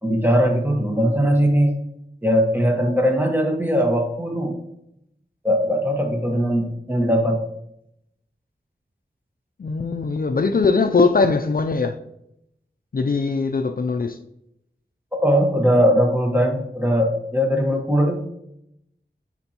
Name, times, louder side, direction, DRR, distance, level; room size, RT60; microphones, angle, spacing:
voice 1, 0.0-1.7 2.2-4.5 5.4-7.4 15.1-18.2, equal, 10° right, 1.4 m, -20 dB
voice 2, 9.6-12.0 12.9-14.2, left 4 dB, 50° left, 0.4 m, -21 dB
9.2 x 4.4 x 2.9 m
wide cardioid pair, 50°, 19 cm